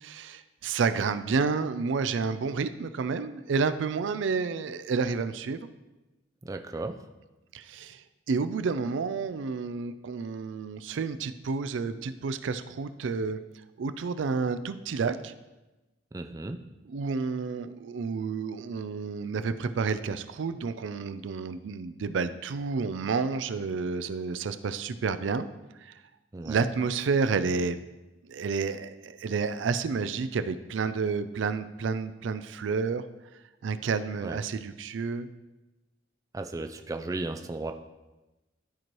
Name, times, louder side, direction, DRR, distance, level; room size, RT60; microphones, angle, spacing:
voice 1, 0.0-5.7 7.5-13.4 13.8-15.3 16.9-25.5 25.8-25.9 26.4-27.8 28.3-33.0 33.6-35.3, right 5 dB, 90° right, 12 dB, 0.4 m, -30 dB
voice 2, 6.5-7.0 16.1-16.6 26.3-26.7 34.2-34.4 36.3-37.7, right 2 dB, 20° right, 5 dB, 0.3 m, -35 dB
12.5 x 4.5 x 3.1 m, 1.1 s
head